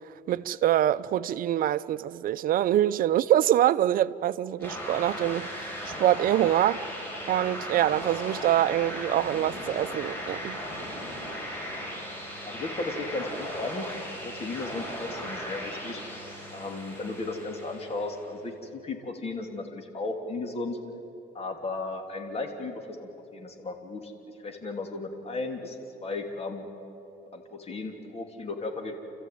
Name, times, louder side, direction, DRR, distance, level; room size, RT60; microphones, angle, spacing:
voice 1, 0.3-5.5 6.0-6.8 7.3-10.6, right 12 dB, 55° right, 0.6 m, -24 dB
sound 1, 4.6-18.3, equal, 10° left, 6.4 m, -37 dB
voice 2, 12.5-13.9 14.2-16.0 16.5-20.8 21.3-24.1 24.4-25.8 26.0-26.6 27.3-29.0, left 3 dB, 35° left, 3.1 m, -35 dB
30.0 x 14.0 x 9.4 m
cardioid pair, 110°, 17 cm